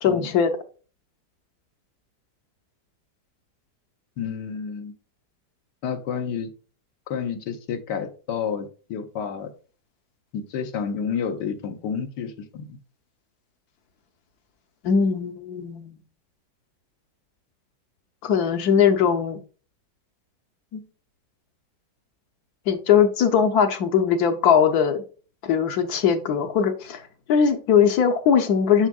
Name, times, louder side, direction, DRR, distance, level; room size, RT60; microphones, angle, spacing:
voice 1, 0.0-0.5 14.8-16.0 18.2-19.4 20.7-20.8 22.7-25.0 25.4-27.0 27.3-28.9, left 7 dB, 70° left, 7 dB, 1.2 m, -20 dB
voice 2, 4.2-4.9 5.8-6.5 7.1-9.5 10.3-12.8, left 7 dB, 85° left, 7 dB, 1.4 m, -30 dB
7.2 x 6.0 x 2.3 m, 0.36 s
omnidirectional pair, 1.8 m